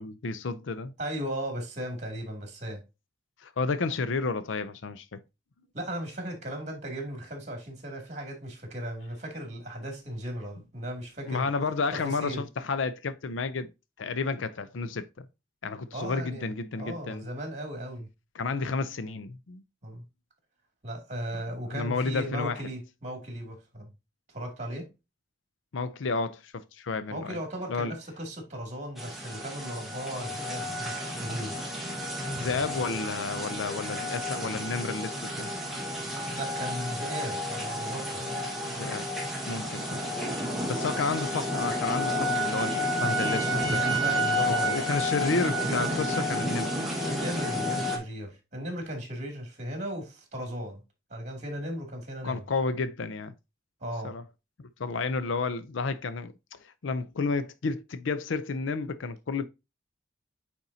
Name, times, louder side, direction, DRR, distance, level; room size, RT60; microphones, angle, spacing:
voice 1, 0.0-0.9 3.4-5.2 11.3-13.7 14.0-15.3 15.6-17.2 18.3-19.6 21.7-22.6 25.7-27.4 27.7-28.0 32.4-35.5 38.6-39.1 39.5-40.0 40.7-43.8 44.6-46.7 52.2-53.3 54.0-54.2 54.8-56.3 56.6-59.4, left 4 dB, 90° left, 0.5 m, -31 dB
voice 2, 1.0-2.8 5.7-11.5 11.9-12.5 15.9-18.1 19.8-20.0 20.8-23.9 24.3-24.9 27.1-31.6 36.2-38.4 43.8-44.8 47.0-50.8 51.1-52.4 53.8-54.2, right 1 dB, 40° right, 2.4 m, -36 dB
sound 1, 29.0-48.0, equal, ahead, 1.4 m, -31 dB
8.9 x 4.3 x 2.7 m
head